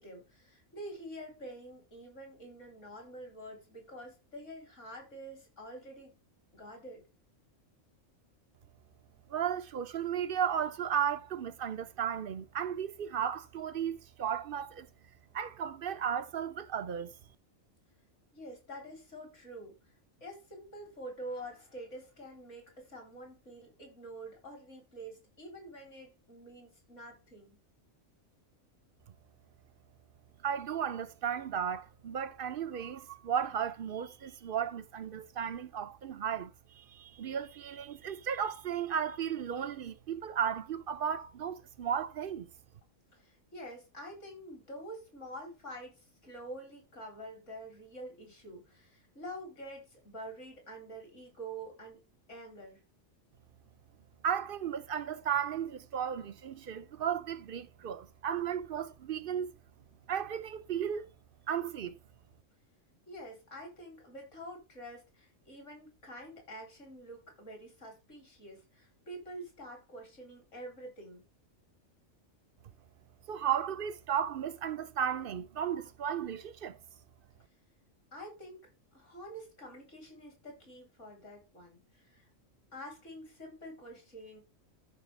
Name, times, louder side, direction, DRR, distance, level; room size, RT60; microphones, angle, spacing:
voice 1, 0.0-6.2 6.5-7.0 18.3-19.9 20.2-27.6 43.1-52.0 52.3-52.8 63.1-71.2 78.1-78.6 78.9-82.3 82.7-84.4, right 1 dB, 65° left, 4.0 m, -47 dB
voice 2, 9.3-14.9 15.3-17.1 30.4-42.5 54.2-59.5 60.1-61.1 61.5-62.0 73.3-76.8, right 8 dB, 55° right, 0.7 m, -34 dB
14.0 x 5.0 x 3.3 m
omnidirectional pair, 1.3 m